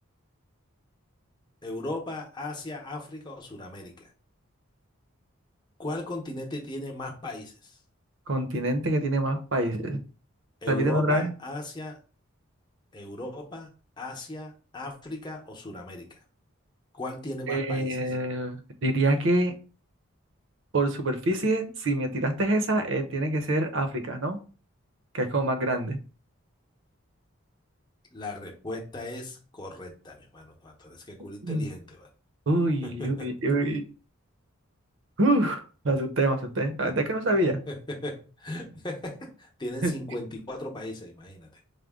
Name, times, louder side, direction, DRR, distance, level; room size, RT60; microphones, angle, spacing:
voice 1, 1.6-4.1 5.8-7.8 10.6-12.0 12.9-13.7 14.0-16.1 16.9-18.0 28.1-32.1 32.8-33.3 37.7-41.5, left 1 dB, 20° left, 1 dB, 0.8 m, -37 dB
voice 2, 8.3-10.0 10.7-11.3 17.5-19.5 20.7-24.4 25.1-26.0 31.4-31.7 32.5-33.9 35.2-37.6 39.8-39.9, right 1 dB, 60° right, 7 dB, 0.7 m, -26 dB
5.0 x 2.1 x 3.6 m, 0.36 s
head